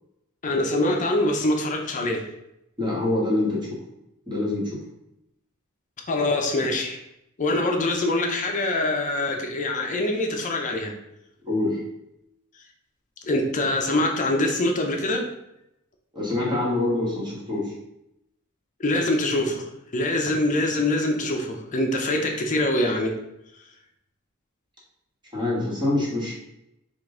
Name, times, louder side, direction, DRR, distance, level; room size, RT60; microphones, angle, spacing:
voice 1, 0.4-2.2 6.1-7.0 7.4-10.9 13.2-15.3 18.8-19.7 19.9-23.1, left 1 dB, 35° left, 2 dB, 0.5 m, -24 dB
voice 2, 2.8-3.8 4.3-4.8 11.4-11.8 16.1-17.7 25.3-26.3, left 2 dB, 20° right, -5 dB, 1.4 m, -25 dB
5.1 x 2.5 x 3.6 m, 0.85 s
head